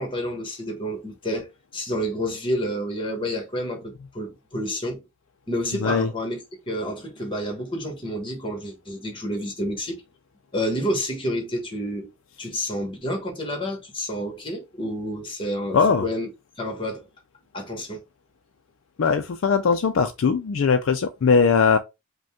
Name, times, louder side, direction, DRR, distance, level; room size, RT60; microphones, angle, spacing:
voice 1, 0.0-5.0 5.5-6.4 6.7-10.0 10.5-12.1 12.4-16.3 16.6-17.1 17.5-18.0, equal, 25° left, 1.2 m, -29 dB
voice 2, 15.7-16.0 19.0-21.8, left 5 dB, 65° left, 0.4 m, -20 dB
5.1 x 2.2 x 3.5 m
head